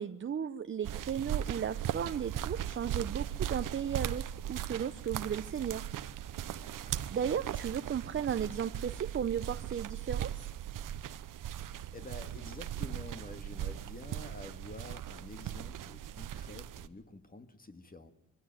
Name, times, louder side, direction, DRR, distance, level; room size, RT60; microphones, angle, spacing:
voice 1, 0.0-5.8 7.1-10.5, right 8 dB, 35° right, 10 dB, 0.7 m, -35 dB
sound 1, 0.8-16.9, right 11 dB, 70° right, 1.0 m, -38 dB
voice 2, 6.5-7.0 11.6-18.1, left 2 dB, 25° left, 8 dB, 1.9 m, -49 dB
23.0 x 16.0 x 9.3 m, 1.0 s
cardioid pair, 90°, 34 cm